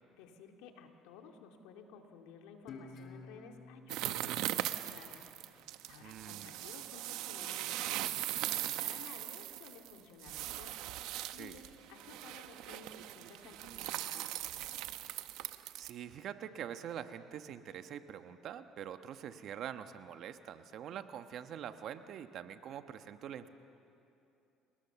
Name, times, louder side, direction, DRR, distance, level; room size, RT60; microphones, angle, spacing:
voice 1, 0.1-5.2 5.9-10.7 11.3-11.6 11.9-14.8, left 6 dB, 85° left, 4 dB, 2.3 m, -55 dB
Guitar, 2.7-5.9, left 4 dB, 50° left, 3.0 m, -53 dB
sound 1, 3.9-15.9, right 14 dB, 80° right, 0.8 m, -39 dB
voice 2, 6.0-6.6 11.3-11.6 15.7-23.5, right 9 dB, 60° right, 9 dB, 1.2 m, -45 dB
30.0 x 19.5 x 7.0 m, 2.8 s
supercardioid pair, 100°, 0 cm